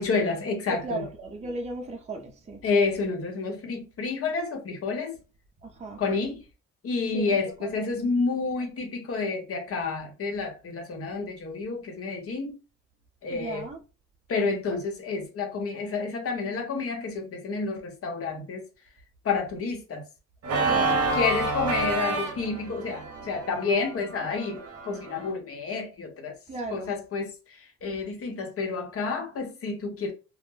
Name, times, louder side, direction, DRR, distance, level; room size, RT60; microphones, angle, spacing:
voice 1, 0.0-1.1 2.6-5.2 6.0-6.4 6.8-12.6 13.2-13.7 14.3-18.6 19.2-20.0 20.7-26.3 26.7-30.1, left 4 dB, 50° left, 0.9 m, -29 dB
voice 2, 0.7-2.6 5.6-6.0 7.1-8.1 13.3-13.8 20.7-21.0 26.5-27.0, right 2 dB, 20° right, 0.5 m, -36 dB
Organ, 20.4-25.3, right 2 dB, 55° right, 0.8 m, -28 dB
2.2 x 2.1 x 3.1 m
cardioid pair, 90°, 30 cm